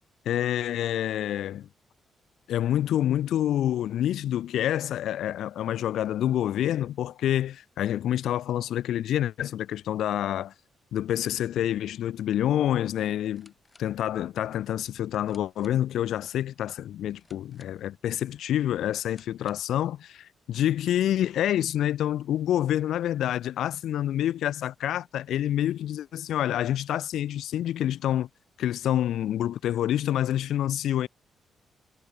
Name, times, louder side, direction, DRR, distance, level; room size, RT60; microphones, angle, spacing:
voice 1, 0.3-1.7 2.5-10.5 10.9-13.5 13.8-28.3 28.6-31.1, left 11 dB, 75° left, 0.5 m, -27 dB
sound 1, 13.2-19.8, left 3 dB, 20° left, 3.8 m, -63 dB
cardioid pair, 145°, 0 cm